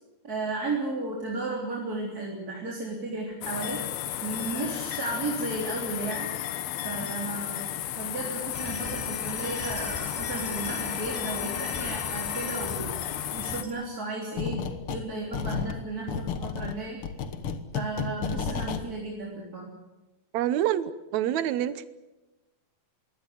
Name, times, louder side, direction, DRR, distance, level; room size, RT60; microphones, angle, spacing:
voice 1, 0.2-3.8 4.2-6.3 6.8-7.7 8.0-13.0 13.3-17.0 17.7-19.7, right 2 dB, 25° right, -2 dB, 3.8 m, -34 dB
sound 1, 3.4-13.6, left 12 dB, 90° left, 3.1 m, -33 dB
sound 2, 8.5-13.7, left 1 dB, 10° left, 4.3 m, -39 dB
sound 3, 14.4-15.1 15.3-18.8, left 6 dB, 60° left, 1.5 m, -32 dB
voice 2, 20.3-21.9, right 11 dB, 70° right, 15 dB, 1.9 m, -27 dB
22.5 x 17.5 x 9.8 m, 1.1 s
omnidirectional pair, 4.2 m